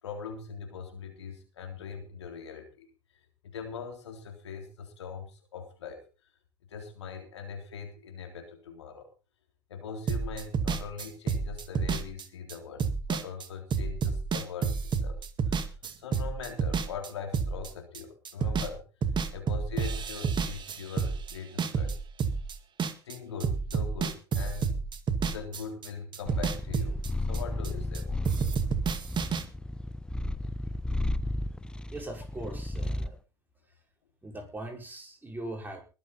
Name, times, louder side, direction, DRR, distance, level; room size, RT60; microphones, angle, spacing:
voice 1, 0.0-2.9 3.4-6.0 6.7-9.1 9.7-15.2 15.5-18.8 19.3-22.0 23.0-24.9 25.2-28.2, left 6 dB, 80° left, 3 dB, 3.7 m, -41 dB
sound 1, 10.1-18.0 18.3-18.7 19.0-23.2 23.4-25.9 26.1-28.0 28.3-29.4, right 5 dB, 35° right, 2.1 m, -30 dB
Purr, 26.3-33.2, left 1 dB, 5° left, 0.9 m, -34 dB
voice 2, 31.9-33.2 33.7-33.8 34.2-35.8, right 1 dB, 15° right, 2 dB, 5.7 m, -40 dB
22.0 x 8.3 x 4.2 m, 0.33 s
hypercardioid pair, 75°, 14 cm